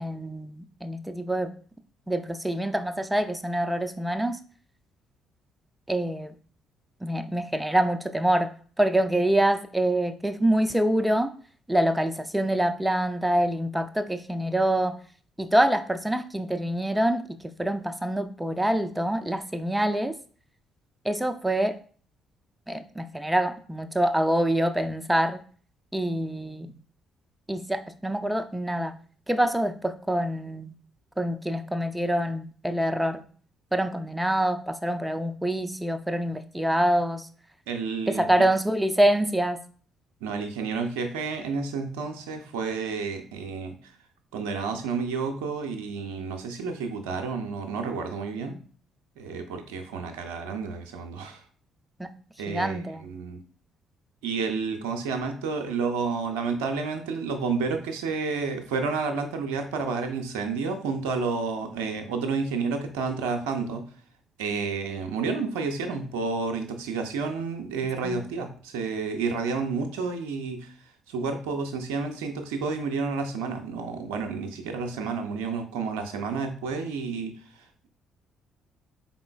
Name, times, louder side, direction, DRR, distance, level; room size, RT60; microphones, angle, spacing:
voice 1, 0.0-1.5 2.1-4.4 5.9-6.4 7.0-11.3 11.7-15.0 15.4-20.1 21.0-21.8 22.7-25.4 25.9-26.7 27.5-28.9 29.3-30.7 31.2-33.2 33.7-37.3 38.1-39.6 52.0-52.1 52.5-53.0 68.0-68.2, right 1 dB, 5° right, 8 dB, 0.4 m, -25 dB
voice 2, 37.7-38.3 40.2-43.8 44.3-48.6 49.2-51.4 52.4-53.4 54.2-63.8 64.4-70.7 71.1-77.3, right 4 dB, 70° right, 5 dB, 0.5 m, -30 dB
4.0 x 3.6 x 2.3 m, 0.44 s
figure-of-eight pair, 45°, 0 cm